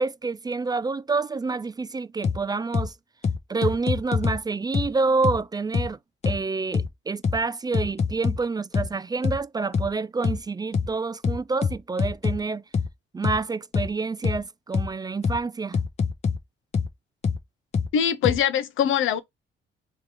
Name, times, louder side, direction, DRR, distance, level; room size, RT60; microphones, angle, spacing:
voice 1, 0.0-2.9 3.5-6.0 6.2-12.6 13.1-15.8, right 4 dB, 20° right, 0.3 m, -28 dB
sound 1, 2.2-2.4 2.7-2.9 3.2-4.4 4.7-4.9 5.2-5.4 5.7-5.9 6.2-6.4 6.7-6.9 7.2-7.4 7.7-8.4 8.7-8.9 9.2-9.4 9.7-9.9 10.2-10.4 10.7-10.9 11.2-12.4 12.7-12.9 13.2-13.4 13.7-13.9 14.2-14.4 14.7-14.9 15.2-15.4 15.7-16.4 16.7-16.9 17.2-17.4 17.7-17.9 18.2-18.4, left 6 dB, 35° left, 0.7 m, -24 dB
voice 2, 17.9-19.2, left 9 dB, 80° left, 0.7 m, -22 dB
3.2 x 3.0 x 3.6 m
cardioid pair, 90°, 20 cm